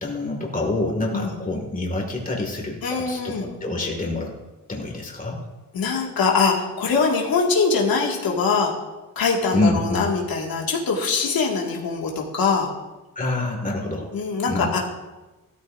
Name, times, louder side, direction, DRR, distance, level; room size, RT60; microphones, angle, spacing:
voice 1, 0.0-3.3 3.6-4.3 4.7-5.4 9.5-10.1 13.2-14.1 14.5-14.7, left 2 dB, 25° left, 0 dB, 2.2 m, -26 dB
voice 2, 2.8-3.5 5.7-8.7 9.2-12.7 14.1-14.8, left 4 dB, 90° left, -1 dB, 2.2 m, -23 dB
17.0 x 13.0 x 2.7 m, 1.1 s
wide cardioid pair, 165°, 34 cm